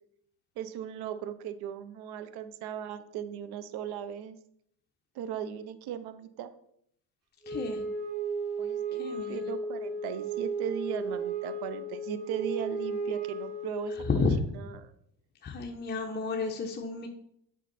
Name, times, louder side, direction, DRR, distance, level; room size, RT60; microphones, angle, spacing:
voice 1, 0.6-4.4 5.1-6.5 8.6-13.9 14.5-14.9, right 9 dB, 70° right, 12 dB, 0.7 m, -37 dB
Wind instrument woodwind instrument, 7.4-14.2, right 3 dB, 40° right, 3.1 m, -34 dB
voice 2, 7.5-7.8 9.0-9.4 13.9-14.3 15.4-17.1, left 4 dB, 25° left, 1 dB, 0.9 m, -31 dB
8.4 x 5.4 x 4.1 m, 0.71 s
supercardioid pair, 100°, 41 cm